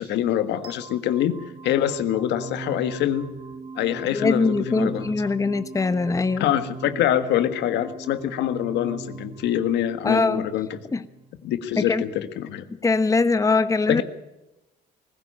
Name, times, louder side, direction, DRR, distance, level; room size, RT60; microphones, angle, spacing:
voice 1, 0.0-1.4 1.6-3.3 3.8-5.1 6.4-10.8 11.4-12.7 13.9-14.0, left 11 dB, 85° left, 1.7 m, -25 dB
sound 1, 0.6-11.6, right 3 dB, 30° right, 2.2 m, -40 dB
voice 2, 4.1-6.5 10.0-10.5 10.9-11.0 11.8-12.0 12.8-14.0, left 3 dB, 20° left, 1.0 m, -22 dB
21.0 x 15.0 x 8.8 m
cardioid pair, 110°, 18 cm